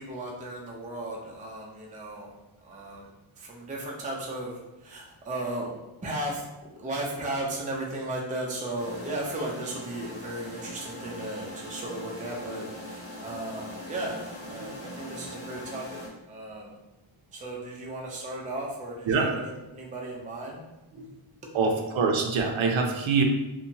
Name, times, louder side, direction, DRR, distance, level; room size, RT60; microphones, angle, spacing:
voice 1, 0.0-2.3 2.6-3.0 3.4-5.7 6.0-6.5 6.8-16.0 16.3-16.7 17.3-20.6 20.9-21.1, right 1 dB, 15° right, -2 dB, 0.4 m, -35 dB
sound 1, 8.8-16.1, left 1 dB, 30° left, 0.8 m, -41 dB
voice 2, 21.5-23.2, right 4 dB, 70° right, 3 dB, 0.5 m, -24 dB
2.8 x 2.2 x 2.6 m, 0.98 s
wide cardioid pair, 125°, 49 cm